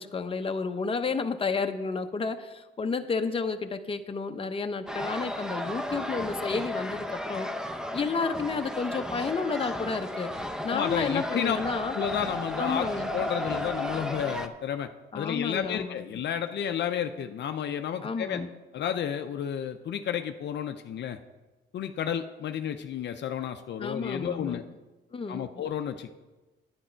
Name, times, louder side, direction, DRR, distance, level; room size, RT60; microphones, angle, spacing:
voice 1, 0.0-7.5 7.9-12.0 12.6-13.1 15.1-15.9 18.0-18.5 23.8-24.6 25.1-25.5, left 4 dB, 25° left, 7 dB, 0.8 m, -31 dB
sound 1, 4.9-14.5, left 1 dB, 5° right, 0.8 m, -34 dB
voice 2, 10.7-11.6 11.9-12.9 13.1-18.4 18.7-21.2 21.7-24.6 25.3-26.1, left 9 dB, 60° left, 7 dB, 0.6 m, -31 dB
9.9 x 9.6 x 4.5 m, 1.1 s
cardioid pair, 90°, 20 cm